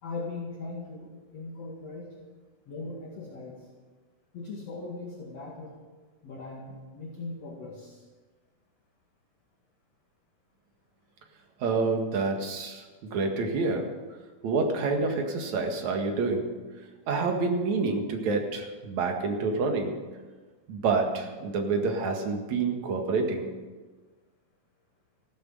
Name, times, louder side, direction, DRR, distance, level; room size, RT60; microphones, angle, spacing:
voice 1, 0.0-2.1 2.7-3.6 4.3-5.8 6.2-8.0, left 3 dB, 55° left, -3 dB, 3.2 m, -39 dB
voice 2, 11.6-13.9 14.4-16.6 17.1-20.0 20.7-23.5, right 4 dB, 65° right, 3 dB, 3.1 m, -28 dB
15.0 x 12.5 x 7.7 m, 1.3 s
omnidirectional pair, 3.6 m